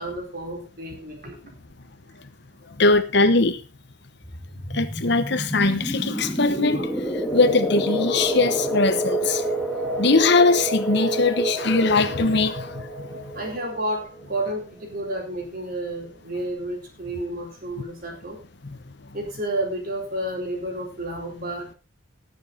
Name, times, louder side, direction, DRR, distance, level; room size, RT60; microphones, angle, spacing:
voice 1, 0.0-1.5 13.3-18.4 19.1-21.8, right 1 dB, 45° right, 4.4 m, -31 dB
voice 2, 2.8-3.6 4.7-6.9 7.3-9.4 10.0-13.1 18.6-18.8, left 3 dB, 55° left, 1.0 m, -21 dB
sound 1, 4.2-14.7, right 1 dB, 5° left, 1.8 m, -28 dB
18.5 x 7.3 x 4.1 m
head